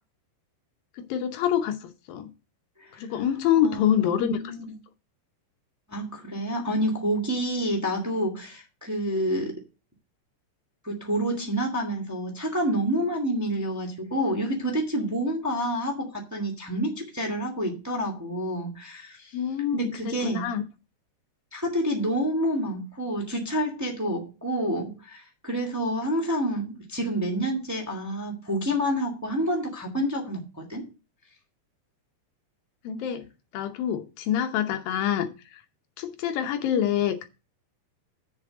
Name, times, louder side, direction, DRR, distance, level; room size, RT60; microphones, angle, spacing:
voice 1, 1.0-2.3 3.0-4.4 19.3-20.6 32.8-33.2 33.5-35.6 36.0-37.3, left 9 dB, 75° left, 2.2 m, -26 dB
voice 2, 2.8-3.2 3.6-4.7 5.9-9.6 10.8-19.4 19.7-20.5 21.5-30.9, equal, 15° right, 0.7 m, -28 dB
7.2 x 6.8 x 7.7 m
omnidirectional pair, 5.1 m